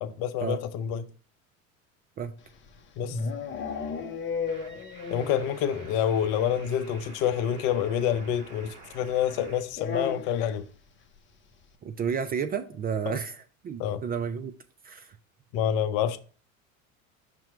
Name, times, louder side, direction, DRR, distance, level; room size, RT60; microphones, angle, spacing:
voice 1, 0.0-1.0 3.0-3.2 5.1-10.6 13.1-13.2 13.8-14.0 15.5-16.2, left 9 dB, 55° left, 0.7 m, -27 dB
sound 1, 2.5-5.5 5.8-5.9 6.2-6.3 6.5-6.7 7.9-8.0 9.7-10.6, left 5 dB, 30° left, 0.9 m, -34 dB
sound 2, 4.5-9.6, right 3 dB, 45° right, 2.0 m, -49 dB
voice 2, 11.8-14.5 14.8-15.2, right 6 dB, 25° right, 0.4 m, -31 dB
6.0 x 2.9 x 5.5 m
hypercardioid pair, 85°, 42 cm